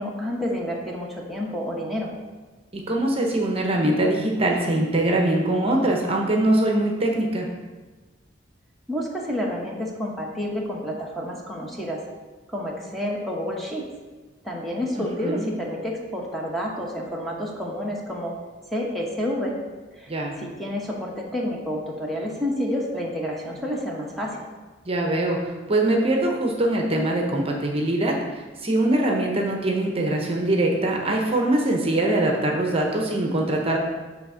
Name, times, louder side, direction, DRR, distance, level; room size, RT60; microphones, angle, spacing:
voice 1, 0.0-2.1 8.9-12.0 12.5-13.8 14.4-18.3 18.7-19.5 20.0-20.1 20.4-24.5, equal, ahead, -2 dB, 0.9 m, -29 dB
voice 2, 2.7-7.5 15.0-15.5 20.1-20.4 24.8-25.4 25.7-28.1 28.6-33.8, right 1 dB, 30° right, 0 dB, 0.8 m, -22 dB
7.3 x 3.4 x 5.6 m, 1.3 s
head